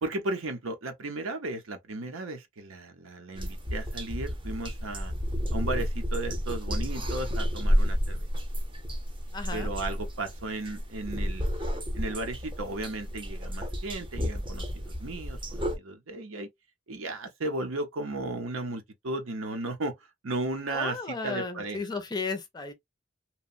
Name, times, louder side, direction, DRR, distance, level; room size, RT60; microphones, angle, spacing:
voice 1, 0.0-5.1 5.5-8.3 9.5-11.5 11.9-16.5 16.9-20.0 20.2-21.8, right 2 dB, 80° right, 0.7 m, -35 dB
sound 1, 3.4-15.8, equal, 25° right, 0.7 m, -31 dB
voice 2, 9.3-9.7 20.7-22.7, left 4 dB, 20° left, 0.5 m, -34 dB
2.9 x 2.1 x 2.5 m
head